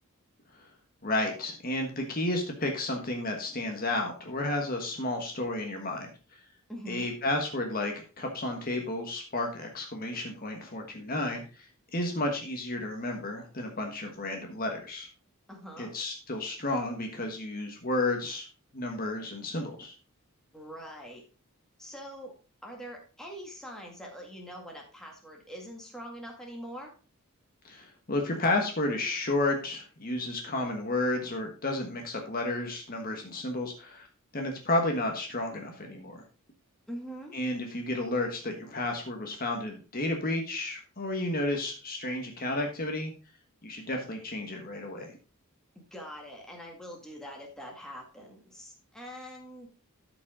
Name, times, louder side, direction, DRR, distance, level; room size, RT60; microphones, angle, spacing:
voice 1, 1.0-6.1 6.9-15.1 15.8-18.5 18.7-20.0 27.6-34.1 34.3-36.2 37.3-43.1 43.6-45.2, left 2 dB, 40° left, 2 dB, 1.4 m, -32 dB
voice 2, 6.7-7.1 15.5-15.9 20.5-21.3 21.8-22.3 22.6-26.9 36.9-37.3 45.8-49.7, equal, ahead, 0 dB, 1.9 m, -43 dB
12.5 x 5.1 x 3.7 m, 0.35 s
head